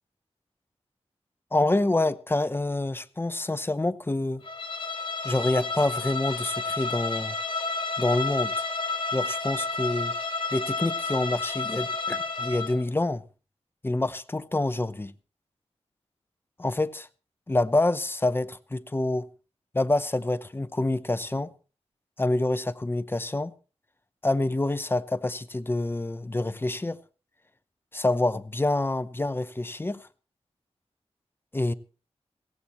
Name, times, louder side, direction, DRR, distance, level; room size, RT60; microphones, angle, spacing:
voice 1, 1.5-4.4 5.2-7.3 8.0-8.7 9.1-10.1 10.5-13.2 13.8-15.1 16.6-17.1 17.5-19.3 19.7-21.5 22.2-23.5 24.2-27.0 27.9-30.1 31.5-31.7, left 2 dB, 20° left, 0.8 m, -27 dB
Bowed string instrument, 4.4-12.8, left 3 dB, 50° left, 2.1 m, -31 dB
17.0 x 15.5 x 3.1 m
wide cardioid pair, 80°, 11 cm